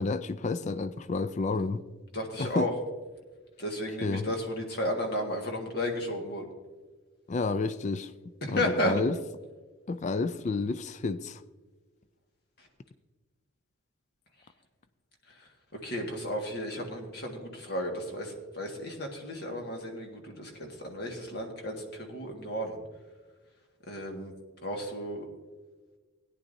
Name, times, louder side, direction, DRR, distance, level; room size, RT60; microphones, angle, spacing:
voice 1, 0.0-1.8 2.4-2.7 4.0-4.3 7.3-8.1 8.4-9.2 9.9-11.4, left 3 dB, 35° left, 0.3 m, -30 dB
voice 2, 2.1-2.7 3.6-6.5 8.4-9.0 12.6-12.7 15.4-22.8 23.9-24.3 24.6-25.3, equal, 50° left, 1.8 m, -33 dB
17.0 x 10.0 x 2.7 m
head